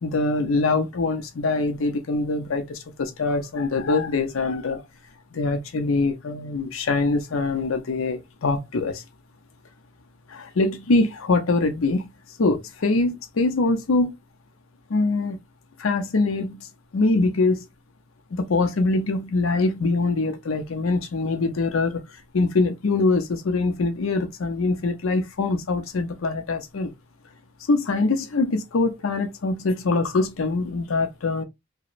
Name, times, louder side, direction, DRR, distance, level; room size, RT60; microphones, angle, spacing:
voice 1, 0.0-4.8 5.3-9.0 10.3-12.1 12.4-14.1 14.9-15.4 15.8-16.7 16.9-17.6 18.3-22.0 22.3-26.9 27.7-31.4, left 3 dB, 90° left, 0.5 m, -23 dB
2.9 x 2.1 x 2.4 m
head